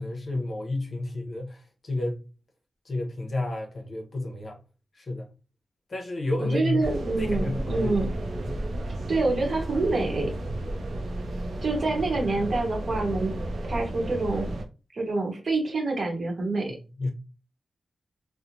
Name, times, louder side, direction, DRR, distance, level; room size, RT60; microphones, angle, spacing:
voice 1, 0.0-2.2 2.9-4.6 5.0-5.3 5.9-6.8 7.2-8.0 8.5-8.6 17.0-17.1, left 2 dB, 45° left, 0.7 m, -31 dB
voice 2, 6.4-8.1 9.1-10.3 11.6-13.4 13.7-14.5 14.9-16.8, right 3 dB, 50° right, 0.9 m, -27 dB
sound 1, 6.8-14.7, right 1 dB, 75° right, 0.5 m, -32 dB
3.0 x 2.1 x 2.6 m
wide cardioid pair, 130°, 0 cm